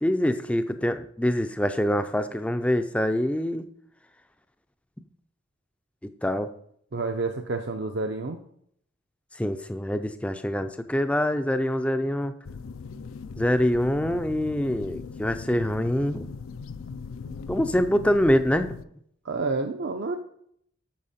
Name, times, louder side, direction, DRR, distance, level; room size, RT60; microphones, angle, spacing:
voice 1, 0.0-3.6 6.2-6.5 9.4-12.3 13.4-16.3 17.5-18.8, equal, 5° left, 9 dB, 0.4 m, -25 dB
voice 2, 6.9-8.4 19.2-20.2, right 3 dB, 55° right, 4 dB, 0.5 m, -29 dB
sound 1, 12.4-18.8, left 5 dB, 70° left, 0.4 m, -39 dB
8.6 x 7.1 x 4.2 m, 0.69 s
head